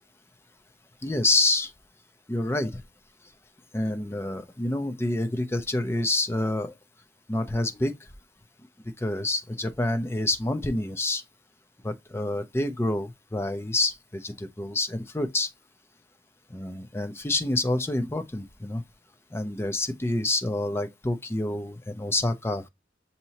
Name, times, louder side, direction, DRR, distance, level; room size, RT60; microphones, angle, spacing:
voice 1, 1.0-1.7 2.3-2.8 3.7-6.7 7.3-7.9 9.0-11.2 11.8-15.5 16.5-18.8 19.3-22.7, left 2 dB, 15° left, 0.5 m, -27 dB
6.6 x 2.8 x 2.8 m
head